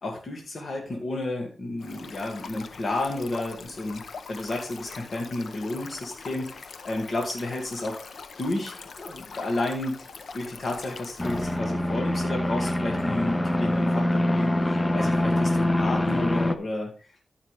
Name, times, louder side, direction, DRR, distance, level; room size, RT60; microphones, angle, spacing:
voice 1, 0.0-4.0 4.3-8.0 8.4-10.0 10.3-16.9, left 2 dB, 70° left, 0 dB, 2.3 m, -31 dB
Stream, 1.8-11.6, left 5 dB, 85° left, 0.8 m, -42 dB
sound 1, 11.2-16.6, left 1 dB, 25° left, 0.9 m, -24 dB
14.0 x 5.7 x 3.5 m, 0.33 s
cardioid pair, 60°, 0 cm